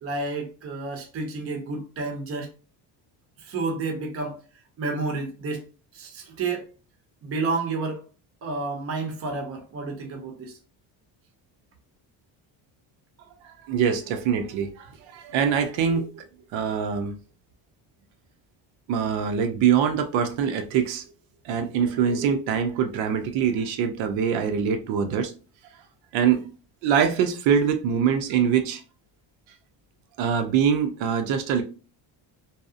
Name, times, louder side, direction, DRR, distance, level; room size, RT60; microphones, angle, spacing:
voice 1, 0.0-2.5 3.4-4.4 4.8-5.7 5.9-6.7 7.2-8.0 8.4-10.6, right 3 dB, 30° right, 0.5 m, -30 dB
voice 2, 13.7-16.2 16.5-17.2 18.9-21.0 21.4-25.3 26.1-26.4 26.8-28.8 30.2-31.6, right 7 dB, 80° right, 0.6 m, -23 dB
2.7 x 2.0 x 2.4 m
cardioid pair, 155°, 46 cm